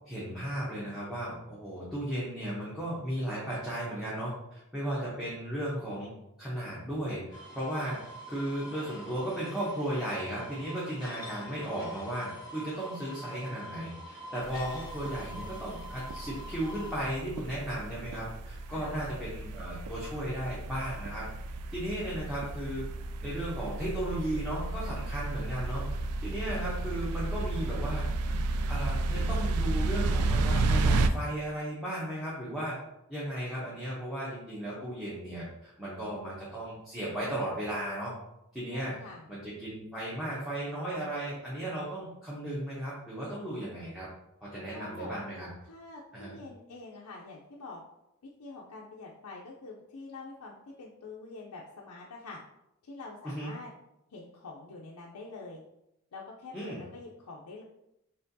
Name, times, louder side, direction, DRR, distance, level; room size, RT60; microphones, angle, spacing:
voice 1, 0.1-6.1 6.4-8.0 8.3-21.2 21.7-22.9 23.2-25.8 26.2-28.1 28.7-32.8 33.1-38.1 38.5-39.0 39.3-44.1 44.4-45.5 46.1-46.4 53.2-53.5 56.5-56.8, right 1 dB, ahead, -9 dB, 0.9 m, -35 dB
sound 1, 7.3-17.0, equal, 15° left, 1.2 m, -45 dB
sound 2, 14.4-31.1, right 2 dB, 85° right, 0.3 m, -32 dB
voice 2, 18.7-19.1 38.7-39.3 44.7-45.2 45.6-47.8 48.4-52.4 52.8-53.7 54.1-55.6 56.1-57.6, left 3 dB, 90° left, -3 dB, 0.5 m, -46 dB
4.3 x 3.3 x 2.7 m, 0.84 s
head